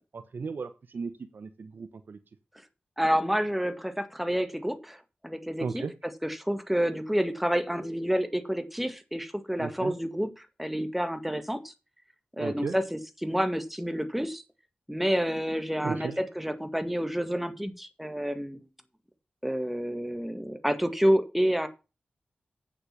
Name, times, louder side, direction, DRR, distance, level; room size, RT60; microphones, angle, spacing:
voice 1, 0.1-2.2 5.6-5.9 9.6-9.9 12.4-12.7 15.8-16.1, right 5 dB, 75° right, 12 dB, 0.9 m, -35 dB
voice 2, 3.0-11.7 12.4-14.4 14.9-18.7 19.4-21.7, equal, 5° right, 9 dB, 1.8 m, -29 dB
8.4 x 7.6 x 5.9 m, 0.29 s
cardioid pair, 45°, 3 cm